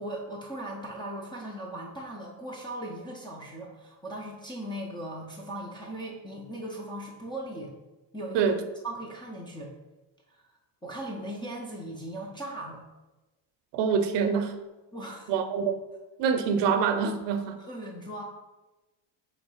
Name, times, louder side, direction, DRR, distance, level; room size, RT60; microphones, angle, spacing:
voice 1, 0.0-7.7 8.1-8.5 8.8-9.7 10.3-10.4 10.8-12.9 14.9-15.3 17.6-18.2, right 1 dB, 10° left, -2 dB, 0.4 m, -38 dB
voice 2, 13.7-14.6 15.3-15.7 16.2-17.6, right 6 dB, 65° right, 8 dB, 0.6 m, -25 dB
3.7 x 3.1 x 4.6 m, 1.1 s
cardioid pair, 140°, 47 cm